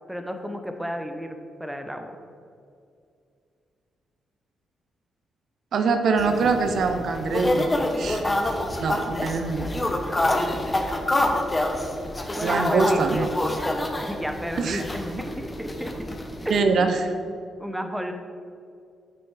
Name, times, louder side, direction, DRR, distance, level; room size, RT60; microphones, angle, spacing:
voice 1, 0.1-2.1 10.3-10.7 12.4-13.3 14.0-15.9 16.4-16.9 17.6-18.1, equal, 5° right, 5 dB, 1.0 m, -32 dB
voice 2, 5.7-7.7 8.0-8.2 8.8-9.7 12.4-13.3 14.6-14.8 16.5-17.1, right 4 dB, 70° right, 6 dB, 0.6 m, -23 dB
sound 1, 6.2-16.6, left 1 dB, 25° left, 1.0 m, -27 dB
7.8 x 6.2 x 4.9 m, 2.4 s
supercardioid pair, 55°, 0 cm